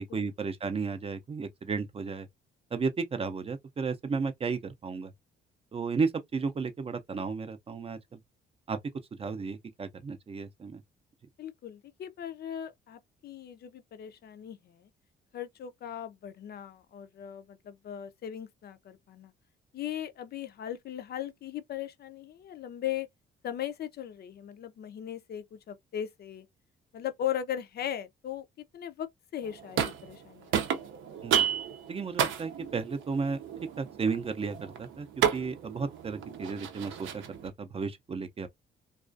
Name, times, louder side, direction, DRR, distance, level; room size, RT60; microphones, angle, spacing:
voice 1, 0.0-2.3 2.7-5.1 5.7-8.2 8.7-8.8 9.2-10.8 31.2-31.5 31.9-33.4 33.8-35.1 35.3-38.5, right 5 dB, 30° right, 0.4 m, -33 dB
voice 2, 11.4-14.9 15.3-19.3 19.7-23.1 23.4-26.5 26.9-30.6, left 10 dB, 55° left, 0.4 m, -38 dB
sound 1, 29.4-30.2 30.5-37.5, right 9 dB, 80° right, 0.6 m, -32 dB
2.3 x 2.3 x 2.5 m
cardioid pair, 90°, 20 cm